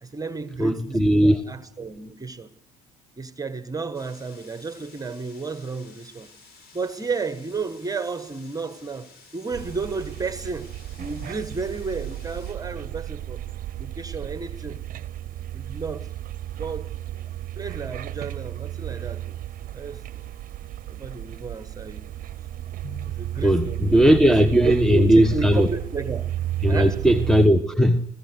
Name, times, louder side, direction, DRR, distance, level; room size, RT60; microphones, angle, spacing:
voice 1, 0.0-2.5 3.2-6.3 6.7-10.7 11.0-13.4 13.8-14.8 15.5-16.1 16.6-16.9 17.5-19.4 19.7-20.2 20.9-22.1 23.0-26.3 26.7-27.0, right 4 dB, 20° right, 1.3 m, -32 dB
voice 2, 0.6-1.4 22.8-23.0 23.4-25.7 26.6-28.0, equal, 5° left, 1.1 m, -18 dB
sound 1, 3.9-12.5, left 4 dB, 65° left, 7.5 m, -52 dB
sound 2, 9.5-27.5, right 13 dB, 55° right, 0.8 m, -33 dB
25.0 x 15.5 x 8.1 m
hypercardioid pair, 65°, 17 cm